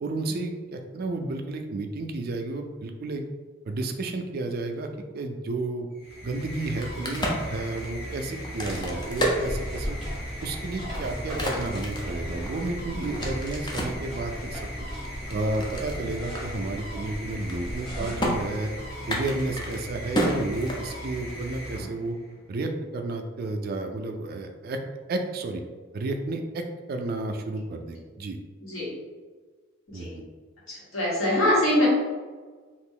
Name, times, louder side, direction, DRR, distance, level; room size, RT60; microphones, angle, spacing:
voice 1, 0.0-3.2 3.7-5.9 6.2-10.0 10.4-14.9 15.3-18.7 19.1-22.1 22.5-24.8 25.1-25.6 25.9-28.4 29.9-30.2, right 2 dB, 50° right, 5 dB, 0.3 m, -32 dB
sound 1, 5.9-22.4, equal, 55° left, 1.0 m, -38 dB
Crack, 6.6-10.2 10.7-14.0 14.6-16.0 16.3-16.4 16.7-17.1 17.3-17.9 18.2-18.3 19.0-21.2, equal, 20° left, 0.5 m, -31 dB
sound 2, 8.6-18.5, equal, ahead, 0.9 m, -38 dB
voice 2, 28.6-28.9 29.9-30.1 30.7-31.9, left 1 dB, 80° left, -7 dB, 1.5 m, -24 dB
2.8 x 2.5 x 3.6 m, 1.4 s
head